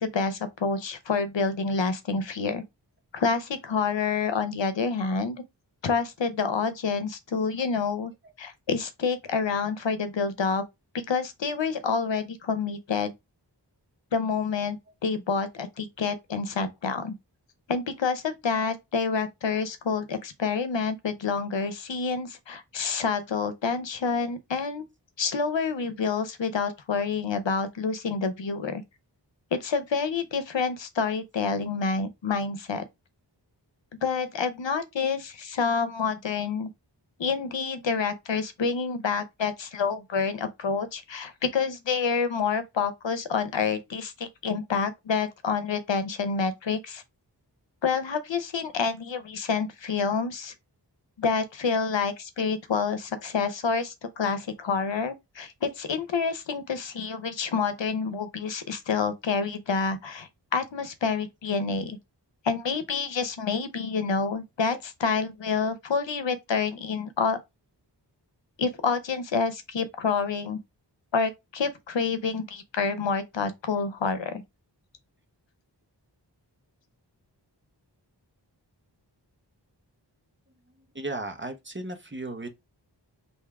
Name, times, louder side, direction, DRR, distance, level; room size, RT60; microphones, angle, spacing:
voice 1, 0.0-2.6 3.1-5.4 5.8-8.1 8.4-10.6 10.9-13.1 14.1-17.1 17.7-24.8 25.2-28.8 29.5-32.8 34.0-36.7 37.2-47.0 47.8-50.5 51.2-62.0 62.4-67.4 68.6-70.6 71.1-74.4, left 5 dB, 85° left, 0.8 m, -28 dB
voice 2, 80.9-82.5, right 2 dB, 25° right, 1.1 m, -35 dB
3.5 x 2.7 x 4.6 m
wide cardioid pair, 55°, 43 cm